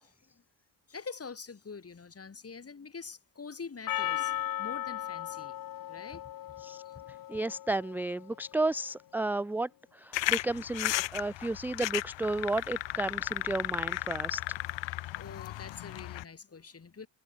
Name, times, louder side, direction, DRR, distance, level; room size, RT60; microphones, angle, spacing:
voice 1, 0.0-0.4 0.9-5.6 5.9-6.2 6.8-7.0 15.1-17.1, left 5 dB, 30° left, 2.9 m, -45 dB
Percussion, 3.9-8.4, left 13 dB, 50° left, 0.7 m, -37 dB
voice 2, 7.3-14.6, right 2 dB, 5° right, 0.4 m, -33 dB
sound 1, 10.1-16.2, left 16 dB, 75° left, 1.1 m, -34 dB
cardioid pair, 75°, 45 cm